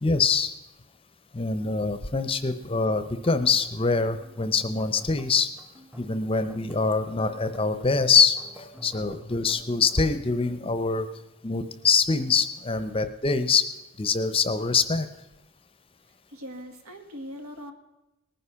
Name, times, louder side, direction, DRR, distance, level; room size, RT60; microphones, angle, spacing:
voice 1, 0.0-0.5 1.3-5.5 6.0-11.1 11.4-13.7 14.0-15.1, left 5 dB, 25° left, 11 dB, 0.7 m, -24 dB
sound 1, 2.7-10.2, equal, 10° right, 0.9 m, -49 dB
voice 2, 16.1-17.7, equal, 80° right, 6 dB, 2.0 m, -41 dB
19.0 x 9.8 x 5.8 m, 0.98 s
head